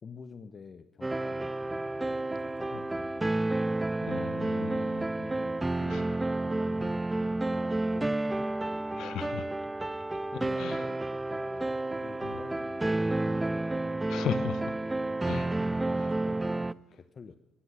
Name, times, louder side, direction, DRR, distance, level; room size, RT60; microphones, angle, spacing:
voice 1, 0.0-3.7 5.2-9.5 10.3-13.9 15.5-17.4, left 5 dB, 45° left, 11 dB, 0.8 m, -49 dB
sound 1, 1.0-16.7, right 2 dB, 15° right, 0.4 m, -30 dB
voice 2, 4.0-5.2 5.9-6.0 9.0-9.5 10.6-10.9 12.2-12.4 14.1-14.8 15.2-15.5 16.0-16.2, left 9 dB, 80° left, 11 dB, 1.0 m, -37 dB
15.5 x 11.0 x 6.3 m, 0.98 s
cardioid pair, 90°, 0 cm